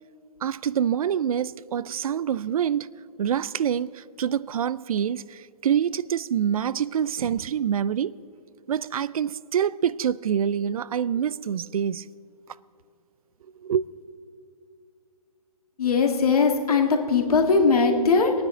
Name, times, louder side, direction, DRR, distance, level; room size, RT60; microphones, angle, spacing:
voice 1, 0.4-2.9 3.2-8.2 8.7-12.1 13.6-13.9, right 9 dB, 65° right, 0.4 m, -26 dB
voice 2, 15.8-18.4, left 4 dB, 70° left, 2.0 m, -20 dB
21.5 x 9.5 x 3.8 m
hypercardioid pair, 150°, 20 cm